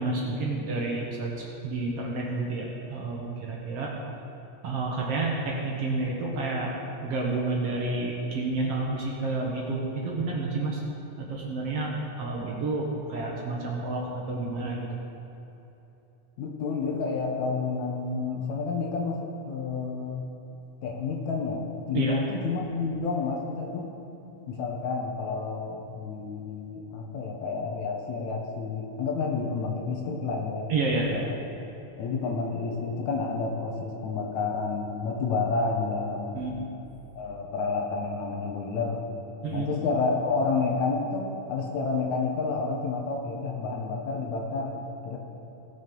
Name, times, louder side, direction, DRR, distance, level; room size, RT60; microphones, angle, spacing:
voice 1, 0.0-3.9 4.6-6.7 7.0-10.8 11.2-14.9 21.9-22.2 30.7-31.1 36.4-36.6 39.4-39.7, right 3 dB, 60° right, -2 dB, 2.1 m, -30 dB
voice 2, 16.4-20.3 20.8-23.9 24.5-30.7 31.1-31.4 32.0-36.6 37.2-39.1 39.5-45.2, left 4 dB, 70° left, 1 dB, 2.3 m, -30 dB
17.5 x 6.3 x 5.3 m, 3.0 s
omnidirectional pair, 3.6 m